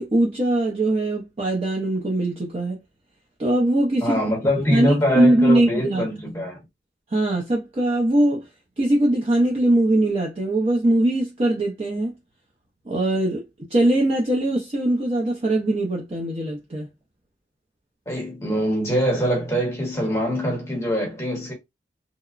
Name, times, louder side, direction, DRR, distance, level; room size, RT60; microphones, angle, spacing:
voice 1, 0.0-2.8 3.4-4.2 4.7-6.1 7.1-8.5 8.8-12.1 12.9-13.4 13.7-16.9, right 1 dB, 35° right, 0.5 m, -21 dB
voice 2, 4.0-6.6 18.1-21.5, equal, 15° left, 0.9 m, -23 dB
2.9 x 2.1 x 2.4 m
head